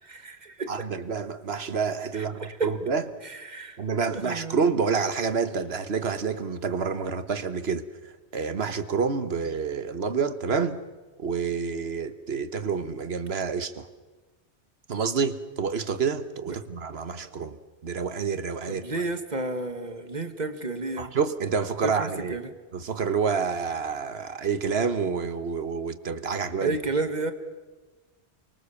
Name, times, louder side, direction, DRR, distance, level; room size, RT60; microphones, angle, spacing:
voice 1, 0.0-0.7 2.1-2.7 3.2-3.8 4.1-4.6 16.5-16.7 18.7-21.2 21.8-22.6 26.6-27.3, right 3 dB, 40° right, 8 dB, 1.9 m, -32 dB
voice 2, 0.7-3.0 3.8-10.8 11.2-13.9 14.9-17.6 17.8-18.8 21.0-22.4 22.7-26.8, right 5 dB, 65° right, 12 dB, 1.5 m, -28 dB
28.5 x 24.0 x 7.1 m, 1.2 s
omnidirectional pair, 1.1 m